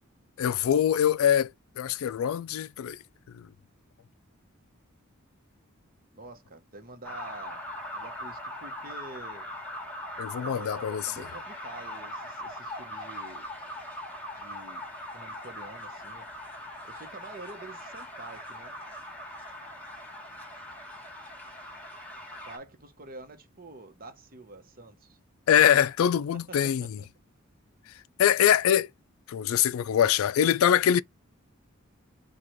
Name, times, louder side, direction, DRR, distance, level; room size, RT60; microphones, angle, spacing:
voice 1, 0.4-1.5 1.8-3.0 3.3-3.5 10.2-11.1 25.5-27.0 28.2-28.9 29.3-31.0, left 9 dB, 75° left, 0.3 m, -23 dB
voice 2, 6.1-7.7 7.9-9.5 10.4-13.5 14.3-14.8 15.1-16.3 16.8-18.8 22.4-25.2 26.3-27.1, right 2 dB, 45° right, 1.0 m, -47 dB
sound 1, 7.0-22.6, left 1 dB, 5° left, 1.6 m, -41 dB
4.7 x 2.4 x 4.5 m
head